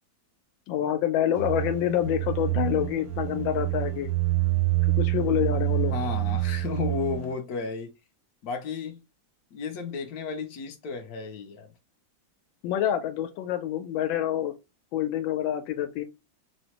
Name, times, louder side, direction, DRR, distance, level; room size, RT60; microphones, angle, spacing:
voice 1, 0.7-4.1 4.8-5.9 12.6-14.5 14.9-16.0, left 11 dB, 85° left, 1.3 m, -27 dB
sound 1, 1.4-7.3, right 18 dB, 70° right, 0.9 m, -27 dB
voice 2, 5.9-7.9 8.4-9.0 9.5-11.7, left 5 dB, 70° left, 0.9 m, -33 dB
3.8 x 2.1 x 2.8 m
omnidirectional pair, 2.1 m